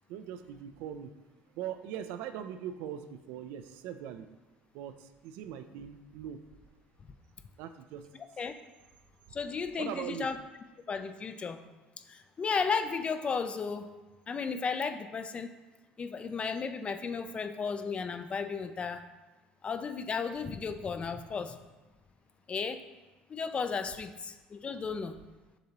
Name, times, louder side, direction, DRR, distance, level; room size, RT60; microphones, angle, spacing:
voice 1, 0.1-1.1 1.6-4.3 4.7-6.4 7.6-8.1 9.8-10.3, right 9 dB, 75° right, 10 dB, 0.3 m, -40 dB
voice 2, 9.3-10.4 10.9-11.6 12.1-14.0 14.3-15.5 16.0-19.0 19.6-21.6 22.5-22.8 23.3-25.2, left 5 dB, 30° left, 10 dB, 0.3 m, -34 dB
6.7 x 2.7 x 3.0 m, 1.1 s
supercardioid pair, 85°, 4 cm